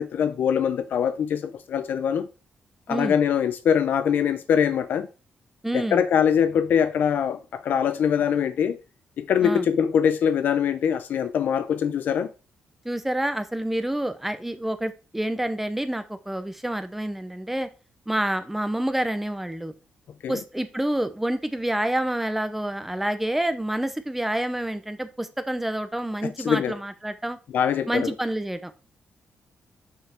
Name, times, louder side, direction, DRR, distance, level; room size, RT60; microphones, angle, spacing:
voice 1, 0.0-2.3 2.9-5.1 5.7-8.8 9.2-12.3 20.2-20.4 26.4-26.8 27.5-28.1, left 8 dB, 70° left, 0.5 m, -23 dB
voice 2, 5.6-6.0 9.4-9.7 12.8-17.7 18.1-19.7 20.3-27.4 27.9-28.7, right 1 dB, 5° right, 0.7 m, -28 dB
5.8 x 5.6 x 4.4 m
wide cardioid pair, 145°, 3 cm